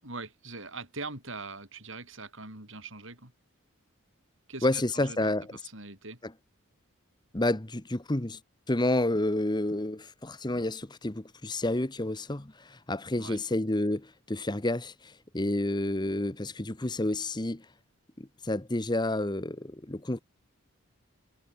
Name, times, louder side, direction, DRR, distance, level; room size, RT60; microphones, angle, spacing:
voice 1, 0.0-3.3 4.5-6.2 13.2-13.4, right 3 dB, 60° right, 7.2 m, -42 dB
voice 2, 4.6-5.5 7.3-8.4 8.7-17.7 18.2-20.2, left 1 dB, 20° left, 1.0 m, -30 dB
head